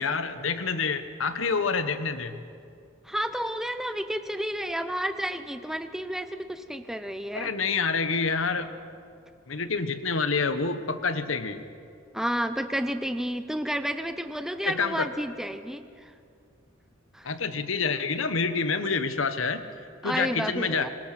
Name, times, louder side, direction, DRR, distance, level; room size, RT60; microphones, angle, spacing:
voice 1, 0.0-2.4 7.3-8.7 9.5-11.6 14.6-15.1 17.2-19.6 20.0-20.9, left 4 dB, 70° left, 10 dB, 1.2 m, -27 dB
voice 2, 3.0-7.5 12.1-15.8 17.1-17.3 20.0-20.9, equal, ahead, 9 dB, 0.6 m, -31 dB
24.5 x 21.0 x 5.9 m, 2.4 s
head